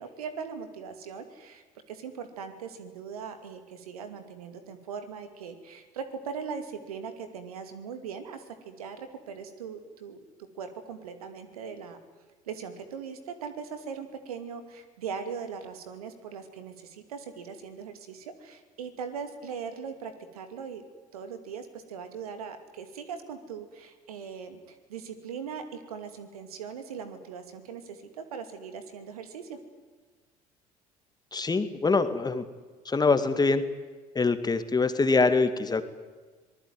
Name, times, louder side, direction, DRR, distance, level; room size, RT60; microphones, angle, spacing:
voice 1, 0.0-10.2 10.5-12.0 12.4-20.8 21.1-29.6, right 6 dB, 75° right, 8 dB, 2.6 m, -40 dB
voice 2, 31.3-32.4 32.9-33.6 34.2-35.8, left 3 dB, 20° left, 10 dB, 2.0 m, -24 dB
25.5 x 20.0 x 9.4 m, 1.4 s
figure-of-eight pair, 60°, 19 cm